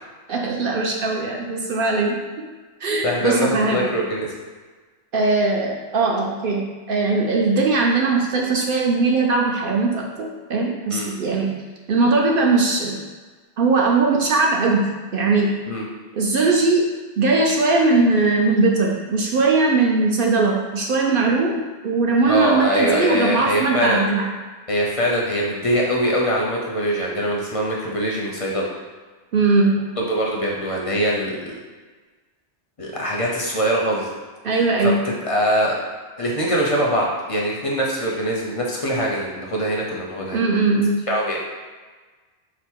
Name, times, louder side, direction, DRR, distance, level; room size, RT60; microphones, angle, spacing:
voice 1, 0.3-2.2 2.8-3.9 5.1-11.5 11.9-13.0 13.6-15.5 16.1-16.9 17.2-24.3 29.3-29.8 34.4-35.0 40.3-41.0, right 3 dB, 60° right, 0 dB, 0.6 m, -20 dB
voice 2, 3.0-4.3 10.9-11.1 15.7-15.8 22.3-24.0 24.7-28.7 30.0-31.5 32.8-34.1 34.5-35.8 36.2-40.4 41.1-41.4, equal, 40° left, -2 dB, 0.5 m, -23 dB
5.0 x 2.0 x 4.4 m, 1.4 s
omnidirectional pair, 1.2 m